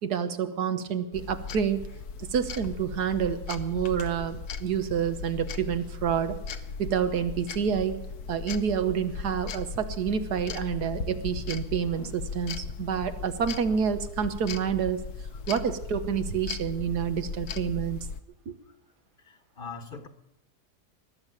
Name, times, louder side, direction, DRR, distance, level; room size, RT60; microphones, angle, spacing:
voice 1, 0.0-1.8 2.2-6.4 6.8-8.0 8.3-15.0 15.5-18.1 18.5-18.6, right 7 dB, 80° right, 10 dB, 1.7 m, -28 dB
sound 1, 1.1-18.2, left 5 dB, 70° left, 1.4 m, -38 dB
voice 2, 19.2-20.1, left 5 dB, 35° left, 10 dB, 1.3 m, -41 dB
20.0 x 7.4 x 9.2 m, 0.86 s
omnidirectional pair, 1.7 m